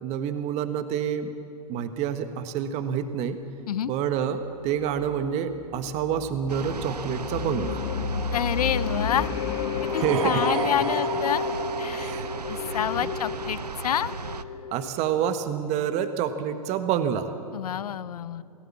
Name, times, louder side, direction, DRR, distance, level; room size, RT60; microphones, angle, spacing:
voice 1, 0.0-1.3 1.7-3.4 3.9-7.8 9.9-10.2 11.9-12.3 12.7-12.8 13.0-13.1 14.7-17.3, right 8 dB, 35° right, 9 dB, 1.5 m, -28 dB
sound 1, 4.6-15.0, left 5 dB, 50° left, 1.4 m, -32 dB
sound 2, 6.5-14.4, right 5 dB, 90° right, 1.0 m, -37 dB
voice 2, 8.3-9.3 9.9-11.5 11.8-12.1 12.5-14.1 17.5-18.4, left 10 dB, 70° left, 17 dB, 0.7 m, -28 dB
sound 3, 9.7-12.8, right 5 dB, 60° right, 3.8 m, -31 dB
28.5 x 18.0 x 7.3 m, 2.8 s
hypercardioid pair, 115°, 20 cm